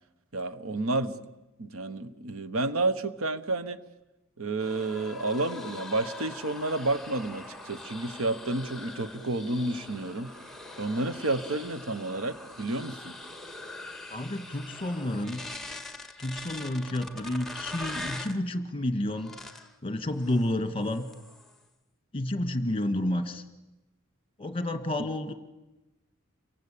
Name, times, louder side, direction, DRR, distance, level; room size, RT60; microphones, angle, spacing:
voice 1, 0.3-1.2 1.6-3.8 4.4-10.3 10.8-13.1, right 2 dB, 75° right, 12 dB, 1.2 m, -30 dB
sound 1, 4.6-18.4 19.1-19.7 20.2-20.5 20.8-21.6, left 2 dB, ahead, 1.9 m, -42 dB
voice 2, 14.1-15.4 16.2-19.3 19.8-21.1 22.1-23.4 24.4-25.3, left 1 dB, 25° left, 9 dB, 2.0 m, -30 dB
28.0 x 23.5 x 8.6 m, 1.0 s
head